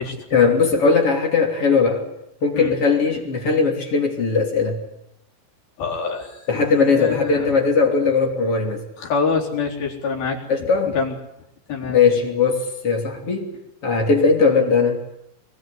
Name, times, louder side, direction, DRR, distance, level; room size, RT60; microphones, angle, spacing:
voice 1, 0.3-2.1 2.4-4.8 6.5-8.8 10.5-10.9 11.9-13.5 13.8-15.0, left 4 dB, 40° left, 3 dB, 3.9 m, -19 dB
voice 2, 5.8-6.5 6.9-7.5 9.0-11.2 11.7-12.0, left 5 dB, 80° left, -1 dB, 5.9 m, -26 dB
23.5 x 21.0 x 9.7 m, 0.81 s
omnidirectional pair, 4.2 m